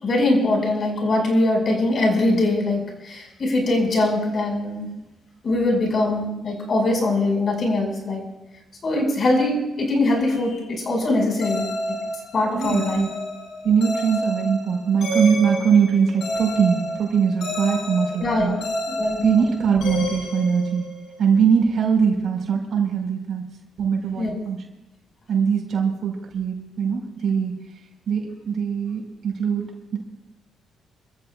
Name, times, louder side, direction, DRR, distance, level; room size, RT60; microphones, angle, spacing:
voice 1, 0.0-4.9 5.4-8.2 8.8-11.7 12.3-13.0 18.2-19.2 24.2-24.4, left 2 dB, 45° left, 1 dB, 5.4 m, -22 dB
sound 1, 11.4-21.2, equal, 75° left, 5.2 m, -30 dB
voice 2, 12.5-13.1 13.6-18.6 19.2-20.8 21.2-23.5 23.8-24.6 25.3-27.6 28.1-29.6 29.9-30.0, right 6 dB, 65° right, 1 dB, 4.6 m, -21 dB
28.5 x 14.5 x 2.4 m, 0.98 s
cardioid pair, 90°, 0 cm